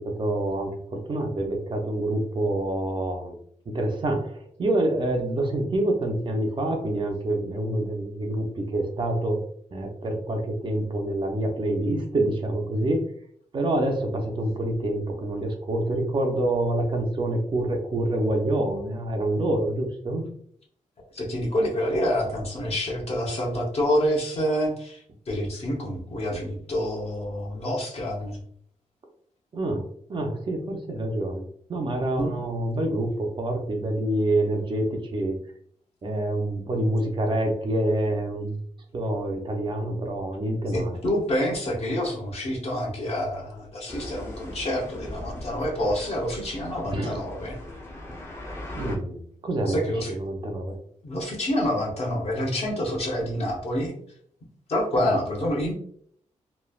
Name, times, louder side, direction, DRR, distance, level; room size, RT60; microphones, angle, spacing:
voice 1, 0.2-3.4 3.7-9.4 9.7-13.0 13.5-20.3 29.5-29.8 30.1-31.4 31.7-35.4 36.0-38.6 38.9-41.0 46.9-47.2 48.7-49.8 50.1-50.8 55.0-55.2, right 1 dB, 40° right, 2 dB, 0.5 m, -27 dB
voice 2, 21.1-28.4 32.2-32.4 40.7-47.6 49.7-50.2 51.0-53.9 54.7-55.7, equal, 55° left, -1 dB, 0.8 m, -27 dB
sound 1, 43.9-49.0, left 1 dB, 20° left, 0.6 m, -39 dB
3.1 x 2.2 x 2.3 m, 0.62 s
wide cardioid pair, 155°, 13 cm